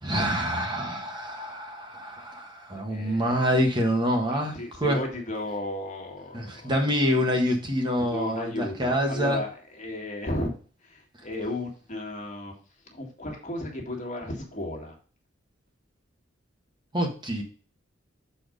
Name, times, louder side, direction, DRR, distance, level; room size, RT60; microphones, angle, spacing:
voice 1, 0.0-5.0 6.3-9.4 16.9-17.4, equal, 25° right, 1 dB, 1.3 m, -26 dB
voice 2, 2.9-3.5 4.3-6.9 8.1-10.5 10.8-12.5 12.9-15.0, left 1 dB, 40° left, 0 dB, 1.9 m, -34 dB
6.8 x 4.4 x 5.1 m, 0.41 s
head